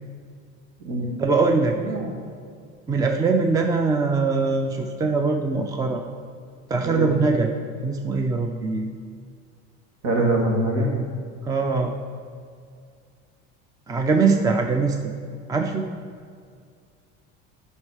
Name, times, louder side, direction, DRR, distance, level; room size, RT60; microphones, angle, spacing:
voice 1, 1.2-1.8 2.9-6.0 6.7-7.5 7.8-8.9 10.2-10.3 10.8-11.1 11.4-11.9 13.9-15.0 15.5-15.9, right 4 dB, 10° right, 4 dB, 0.4 m, -22 dB
voice 2, 1.8-2.1 6.8-7.1 10.0-10.9, right 2 dB, 65° right, 0 dB, 2.0 m, -23 dB
9.5 x 5.6 x 4.9 m, 2.2 s
cardioid pair, 125°, 31 cm